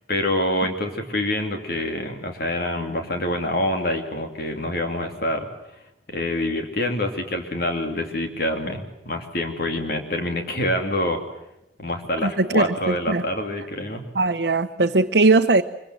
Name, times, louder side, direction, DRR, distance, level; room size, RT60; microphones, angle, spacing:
voice 1, 0.1-5.5 6.1-11.2 11.8-14.0, left 1 dB, 55° left, 2.8 m, -26 dB
voice 2, 12.2-13.2 14.1-15.6, right 3 dB, 65° right, 0.9 m, -19 dB
24.5 x 23.5 x 7.7 m
head